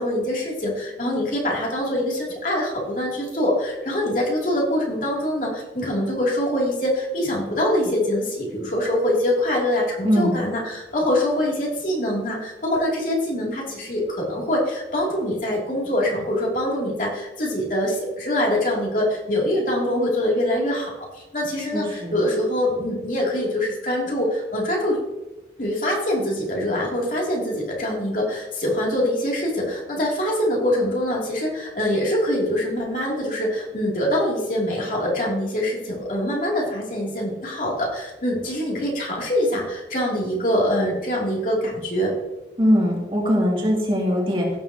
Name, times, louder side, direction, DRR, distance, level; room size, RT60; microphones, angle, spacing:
voice 1, 0.0-25.0 25.6-42.1, left 1 dB, 45° left, -3 dB, 2.8 m, -24 dB
voice 2, 10.0-10.4 21.7-22.2 42.6-44.6, equal, 30° right, -3 dB, 2.5 m, -21 dB
16.5 x 7.4 x 2.9 m, 1.0 s
head